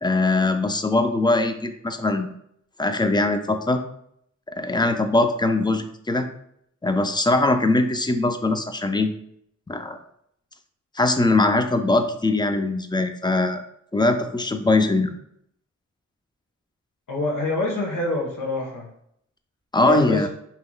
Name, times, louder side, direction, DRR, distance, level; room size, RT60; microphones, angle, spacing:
voice 1, 0.0-2.3 2.8-3.8 4.6-6.3 6.8-9.1 9.7-10.0 11.0-13.6 13.9-15.1 19.7-20.3, left 2 dB, 15° left, 7 dB, 0.4 m, -21 dB
voice 2, 17.1-18.9 19.8-20.3, left 2 dB, 85° left, -1 dB, 1.1 m, -25 dB
5.6 x 3.0 x 2.3 m, 0.71 s
cardioid pair, 75°, 31 cm